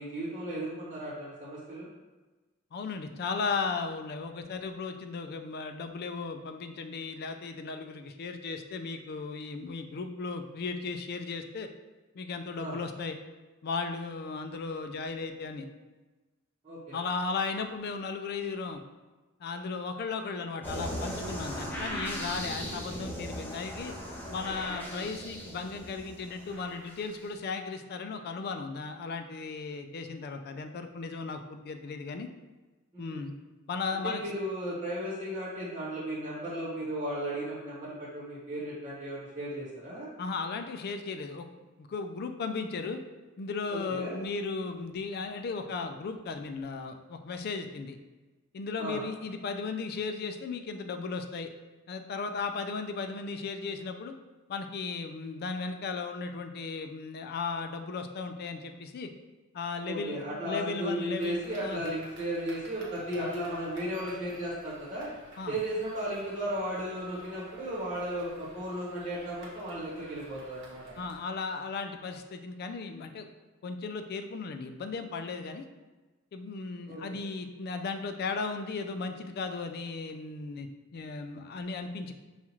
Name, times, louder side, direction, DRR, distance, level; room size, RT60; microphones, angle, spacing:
voice 1, 0.0-1.9 12.5-12.8 16.6-17.0 24.7-25.0 32.9-33.2 34.0-40.1 43.7-44.1 48.8-49.0 59.8-65.1 65.5-71.0 76.9-77.2, right 1 dB, 25° right, -8 dB, 1.1 m, -35 dB
voice 2, 2.7-11.7 12.1-13.2 13.6-15.7 16.9-18.8 19.4-23.9 24.3-32.3 33.0-33.3 33.7-34.3 40.2-41.5 41.8-43.0 43.4-48.0 48.5-51.5 51.9-54.1 54.5-59.1 59.5-61.8 65.4-65.5 71.0-73.3 73.6-75.7 76.3-82.1, left 4 dB, 50° left, 7 dB, 0.3 m, -36 dB
sound 1, 20.6-27.2, equal, 10° left, 0.7 m, -38 dB
sound 2, 61.2-71.2, right 1 dB, 55° right, 1.0 m, -52 dB
5.5 x 2.4 x 3.0 m, 1.2 s
head